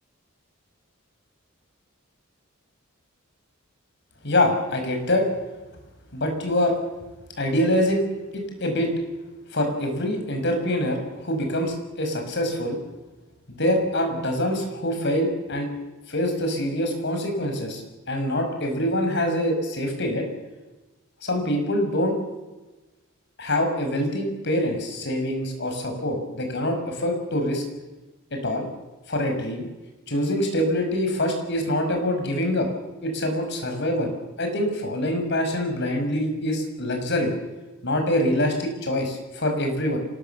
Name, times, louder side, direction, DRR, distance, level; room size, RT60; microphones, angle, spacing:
voice 1, 4.2-5.2 6.1-6.8 7.4-8.0 8.3-8.9 9.5-12.8 13.5-15.7 16.1-20.3 21.2-22.2 23.4-27.6 28.3-28.7 29.1-29.6 30.1-32.7 33.0-34.1 34.4-37.3 37.8-40.0, left 1 dB, 55° left, 4 dB, 5.7 m, -25 dB
26.0 x 19.5 x 7.1 m, 1.1 s
head